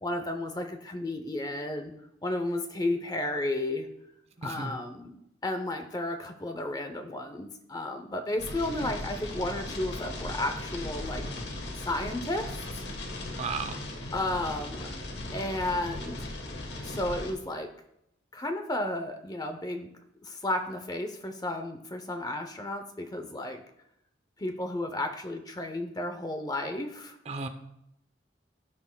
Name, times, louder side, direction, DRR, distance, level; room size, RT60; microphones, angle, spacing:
voice 1, 0.0-1.9 2.2-3.9 4.4-5.2 5.4-11.2 11.9-12.5 13.2-13.4 14.1-14.9 15.3-16.3 16.8-17.7 18.3-19.9 20.2-23.6 24.4-27.2, left 1 dB, 20° left, 6 dB, 0.6 m, -33 dB
voice 2, 4.4-4.7 13.4-13.8 27.3-27.5, right 4 dB, 35° right, 8 dB, 0.7 m, -34 dB
sound 1, 8.4-17.3, left 1 dB, 60° left, 1.3 m, -38 dB
15.5 x 6.0 x 2.3 m, 0.79 s
head